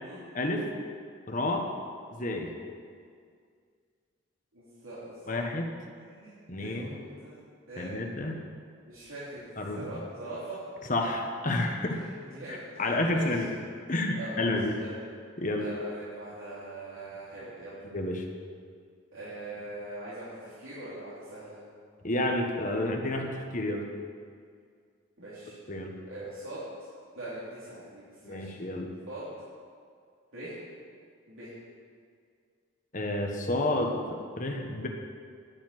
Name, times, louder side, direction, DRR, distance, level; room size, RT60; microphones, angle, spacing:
voice 1, 1.3-1.7 2.1-2.5 5.3-5.6 6.5-7.0 7.8-8.4 9.6-10.0 10.9-12.0 12.8-13.5 13.9-14.7 15.4-15.7 17.9-18.2 22.0-23.8 25.7-25.9 28.2-28.9 32.9-34.9, left 1 dB, 40° left, 2 dB, 1.4 m, -30 dB
voice 2, 4.5-5.5 6.1-6.3 6.6-7.4 7.7-7.9 8.8-10.6 11.9-12.0 12.2-13.4 14.1-14.9 15.6-17.8 19.1-21.6 25.2-25.5 26.1-26.7 27.1-28.5 29.1-29.3 30.3-30.6 31.3-31.5, right 1 dB, 80° right, -12 dB, 3.5 m, -42 dB
10.5 x 7.1 x 9.3 m, 2.1 s
head